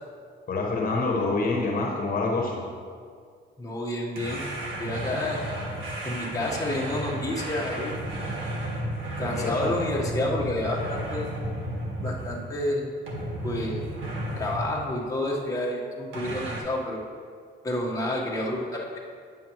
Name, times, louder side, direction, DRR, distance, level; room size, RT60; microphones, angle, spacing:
voice 1, 0.5-2.6 9.3-9.7, left 3 dB, 45° left, 0 dB, 1.2 m, -26 dB
voice 2, 3.6-4.5 4.8-5.4 6.0-7.9 9.2-11.3 12.0-12.9 13.4-13.8 14.4-17.0 17.6-19.0, left 1 dB, 15° left, -3 dB, 1.3 m, -29 dB
sound 1, 4.2-12.6 13.1-14.8 16.1-16.6, right 1 dB, 80° right, 1.6 m, -33 dB
9.3 x 7.2 x 3.1 m, 2.1 s
cardioid pair, 90°, 20 cm